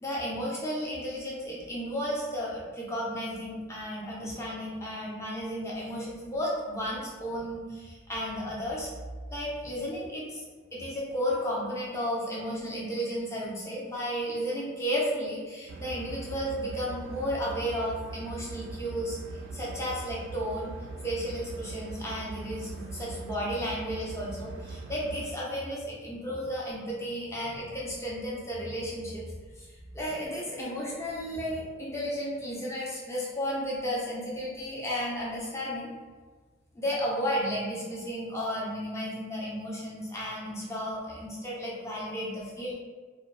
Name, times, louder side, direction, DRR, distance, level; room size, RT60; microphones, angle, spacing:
voice 1, 0.0-8.9 9.3-10.4 10.7-20.7 21.0-29.3 29.6-35.9 36.7-42.7, equal, 15° left, -5 dB, 0.5 m, -33 dB
Gueterzug Bremen, 15.7-25.3, right 3 dB, 65° right, 0.3 m, -41 dB
2.5 x 2.2 x 2.3 m, 1.4 s
head